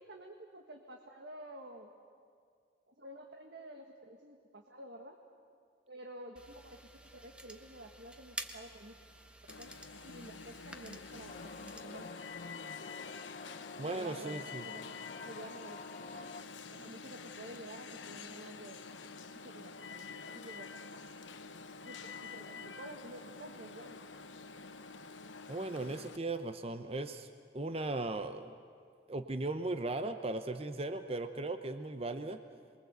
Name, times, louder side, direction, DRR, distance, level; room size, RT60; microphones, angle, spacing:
voice 1, 0.0-1.9 2.9-5.2 5.9-9.0 9.4-9.7 10.0-12.1 13.8-16.3 16.7-20.0 20.3-21.0 21.8-24.0, right 1 dB, 60° right, 3 dB, 1.6 m, -51 dB
sound 1, 6.4-11.8, right 1 dB, 5° right, 1.1 m, -50 dB
Alarm, 9.5-26.2, left 4 dB, 90° left, 1.0 m, -48 dB
sound 2, 11.3-16.4, left 4 dB, 45° left, 0.7 m, -49 dB
voice 2, 13.8-14.6 25.5-27.3 27.5-28.5 29.1-32.4, right 2 dB, 30° right, 8 dB, 0.8 m, -37 dB
28.0 x 22.0 x 8.1 m, 2.2 s
head